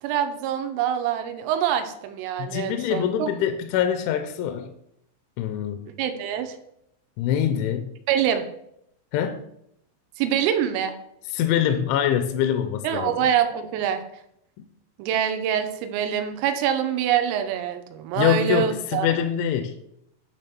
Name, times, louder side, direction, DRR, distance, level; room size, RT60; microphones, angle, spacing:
voice 1, 0.0-3.3 6.0-6.6 8.1-8.5 10.2-11.0 12.8-14.0 15.0-19.1, right 9 dB, 90° right, 8 dB, 3.4 m, -25 dB
voice 2, 2.4-4.7 5.4-5.8 7.2-7.9 9.1-9.4 11.3-13.1 18.2-19.7, left 9 dB, 85° left, 8 dB, 2.8 m, -24 dB
10.0 x 3.5 x 5.9 m, 0.76 s
omnidirectional pair, 5.7 m